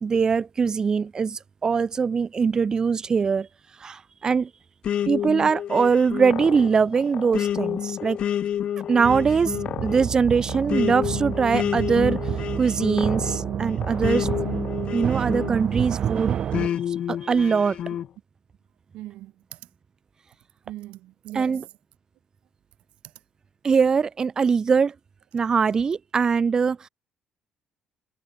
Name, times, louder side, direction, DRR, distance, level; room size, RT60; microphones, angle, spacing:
voice 1, 0.0-3.5 3.8-4.5 5.1-8.2 8.9-9.5 9.8-12.2 12.6-14.3 14.9-16.3 16.9-17.8 21.3-21.6 23.6-24.9 25.3-26.9, right 5 dB, 35° right, 1.5 m, -22 dB
sound 1, 4.8-15.9 16.5-18.1, left 10 dB, 60° left, 1.6 m, -29 dB
voice 2, 8.9-9.3 18.9-19.6 20.6-21.7 23.0-23.1, right 16 dB, 80° right, 2.8 m, -40 dB
sound 2, 9.0-16.7, right 9 dB, 55° right, 1.9 m, -29 dB
supercardioid pair, 85°, 2 cm